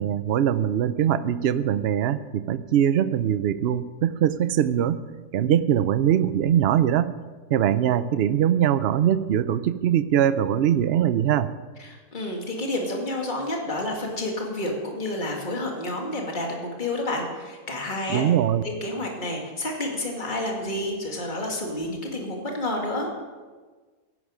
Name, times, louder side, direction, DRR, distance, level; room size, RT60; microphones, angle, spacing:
voice 1, 0.0-5.0 5.3-7.1 7.5-11.5 18.1-18.6, right 10 dB, 60° right, 14 dB, 0.7 m, -22 dB
voice 2, 11.8-18.2 18.6-23.1, left 1 dB, 30° left, 0 dB, 2.4 m, -30 dB
16.5 x 11.0 x 5.1 m, 1.4 s
omnidirectional pair, 1.6 m